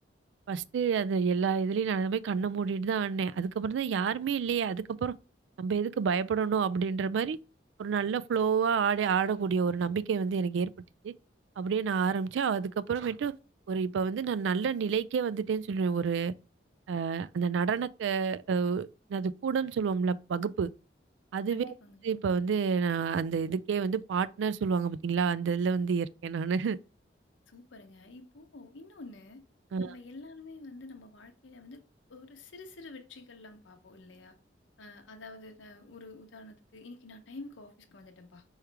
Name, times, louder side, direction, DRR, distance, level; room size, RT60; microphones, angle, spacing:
voice 1, 0.5-5.1 5.6-7.4 7.8-10.7 11.0-11.1 11.6-13.3 13.7-16.3 16.9-20.7 21.3-21.7 22.0-26.8 29.7-29.9, right 6 dB, 80° right, 0.3 m, -29 dB
voice 2, 21.5-22.1 27.5-29.4 29.8-31.8 32.1-34.4 34.8-38.4, left 2 dB, 90° left, 0.8 m, -48 dB
4.8 x 3.2 x 3.3 m
head